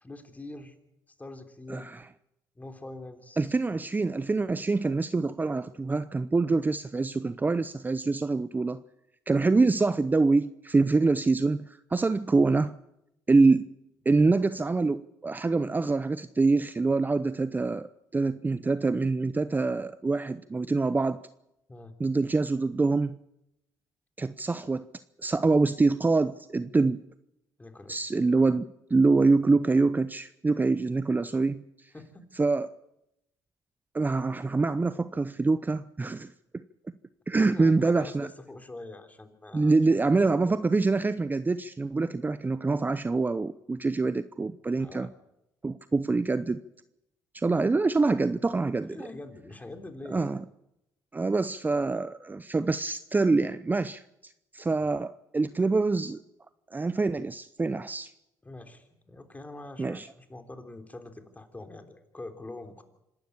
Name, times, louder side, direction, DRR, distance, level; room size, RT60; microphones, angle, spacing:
voice 1, 0.0-0.8 1.2-1.9 2.6-3.5 21.7-21.9 27.6-28.0 31.9-32.3 37.3-40.0 40.4-40.5 44.8-45.1 48.9-50.3 58.4-62.8, left 2 dB, 20° left, 6 dB, 3.4 m, -44 dB
voice 2, 1.7-2.0 3.4-8.8 9.3-12.8 13.3-13.7 14.1-21.2 22.0-23.2 24.2-24.9 25.2-27.0 27.9-31.9 32.3-32.7 33.9-36.6 37.3-38.3 39.5-45.1 45.6-46.6 47.3-49.0 50.1-50.4 51.1-56.2 56.7-58.1 59.8-60.1, right 3 dB, 20° right, 14 dB, 0.7 m, -25 dB
26.0 x 12.0 x 8.6 m, 0.86 s
supercardioid pair, 65°, 8 cm